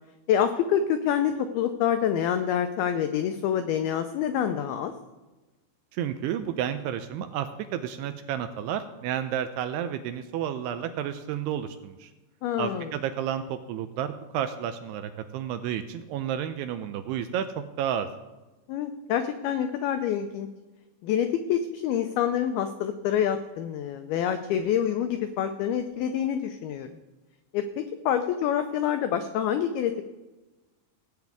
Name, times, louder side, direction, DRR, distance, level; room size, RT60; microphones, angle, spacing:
voice 1, 0.3-4.9 12.4-12.9 18.7-20.5 21.0-26.9 27.5-30.0, left 9 dB, 85° left, 8 dB, 2.2 m, -27 dB
voice 2, 5.9-12.1 12.6-18.1, right 9 dB, 85° right, 9 dB, 2.4 m, -31 dB
17.0 x 9.2 x 3.5 m, 1.2 s
omnidirectional pair, 5.1 m